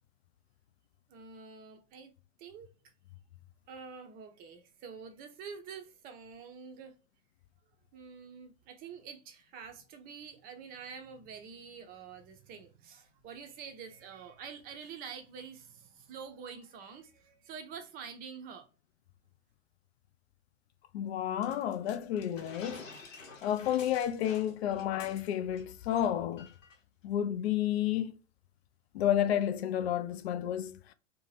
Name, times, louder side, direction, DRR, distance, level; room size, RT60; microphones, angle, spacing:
voice 1, 1.1-2.1 2.4-2.9 3.7-6.9 7.9-18.7, right 6 dB, 25° right, 0.5 m, -47 dB
voice 2, 20.9-22.8 23.4-26.5 27.0-28.2 28.9-30.9, left 10 dB, 55° left, 0.5 m, -31 dB
sound 1, 21.4-25.6 25.9-26.1 26.4-26.8, left 4 dB, 75° left, 0.9 m, -51 dB
2.7 x 2.2 x 3.1 m
figure-of-eight pair, 100°, 39 cm